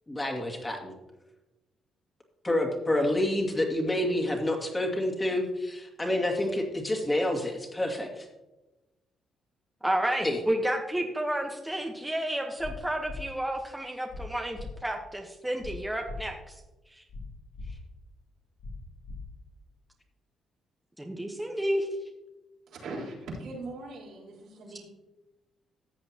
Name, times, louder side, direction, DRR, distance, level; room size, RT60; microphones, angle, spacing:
voice 1, 0.1-0.9 2.4-8.3 10.2-10.4, left 1 dB, 20° left, 1 dB, 2.1 m, -28 dB
voice 2, 9.8-16.5 17.0-17.1 21.0-21.9, right 1 dB, 5° right, 2 dB, 1.1 m, -31 dB
sound 1, 12.6-12.7 13.0-13.2 14.1-14.2 14.5-14.7 15.6-15.7 16.0-16.2 17.1-17.2 17.5-17.7 18.6-18.7 19.0-19.2, left 2 dB, 60° left, 2.7 m, -40 dB
voice 3, 22.7-24.9, right 2 dB, 80° right, -5 dB, 3.9 m, -40 dB
14.0 x 7.7 x 2.9 m, 1.0 s
cardioid pair, 90°, 0 cm